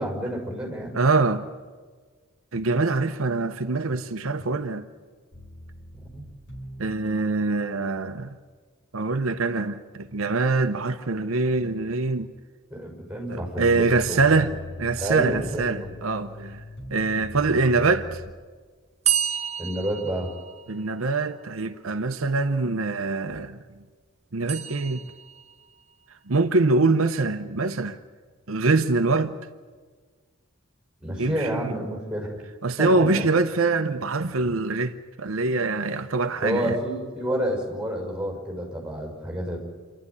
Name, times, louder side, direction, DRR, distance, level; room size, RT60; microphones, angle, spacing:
voice 1, 0.0-1.0 4.4-4.5 6.1-6.3 12.7-14.5 15.0-16.0 16.3-16.4 19.6-20.3 31.0-32.3 32.8-33.3 36.4-39.6, equal, 5° right, 5.8 m, -29 dB
voice 2, 0.9-1.4 2.5-4.8 6.8-8.4 8.9-12.3 13.3-14.5 14.8-16.6 16.9-18.2 20.7-23.6 24.3-25.0 26.3-28.0 28.5-29.3 31.2-31.7 32.6-36.8, right 3 dB, 80° right, 0.9 m, -24 dB
sound 1, 5.3-7.0 13.8-18.3, left 2 dB, 55° left, 5.8 m, -40 dB
sound 2, 19.0-21.0 24.5-25.5, right 10 dB, 30° right, 0.8 m, -29 dB
27.5 x 12.0 x 9.8 m
head